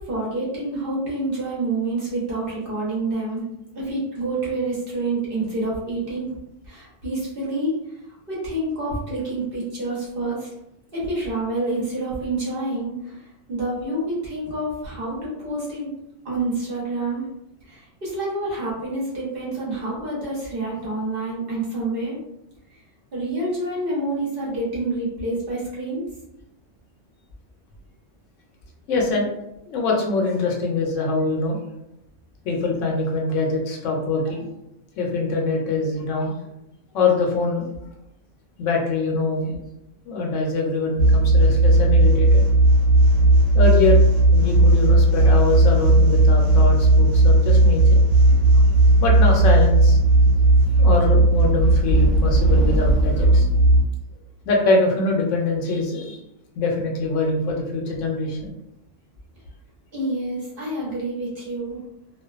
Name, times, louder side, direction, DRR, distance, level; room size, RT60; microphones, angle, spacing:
voice 1, 0.0-3.4 3.7-6.3 6.7-7.8 8.3-10.5 10.9-15.9 16.2-17.2 17.7-22.2 23.1-26.1 59.9-61.8, right 2 dB, 50° right, -6 dB, 1.0 m, -27 dB
voice 2, 28.9-29.3 29.7-31.6 32.4-34.4 35.0-36.4 36.9-37.7 38.6-39.6 40.1-42.4 43.5-44.0 44.3-48.0 48.3-48.6 49.0-50.0 50.7-53.5 54.5-56.2 56.6-58.5, left 3 dB, 75° left, 0 dB, 0.9 m, -23 dB
sound 1, 41.0-53.8, right 2 dB, 75° right, 1.0 m, -15 dB
2.4 x 2.2 x 2.3 m, 0.85 s
omnidirectional pair, 1.3 m